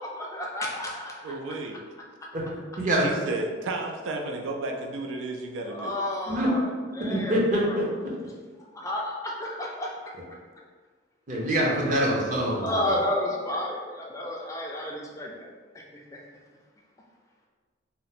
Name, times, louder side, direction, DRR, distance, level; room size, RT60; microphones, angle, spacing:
voice 1, 0.0-1.2 5.7-7.4 7.6-7.9 8.2-8.3 8.7-10.1 12.6-15.5 15.7-16.2, left 1 dB, 15° left, -2 dB, 0.3 m, -31 dB
voice 2, 1.2-1.8 2.8-5.9, right 2 dB, 75° right, 2 dB, 0.3 m, -33 dB
voice 3, 2.3-3.0 6.3-6.5 7.1-7.8 11.3-12.8, right 1 dB, 40° right, -4 dB, 0.7 m, -25 dB
2.7 x 2.1 x 4.0 m, 1.5 s
head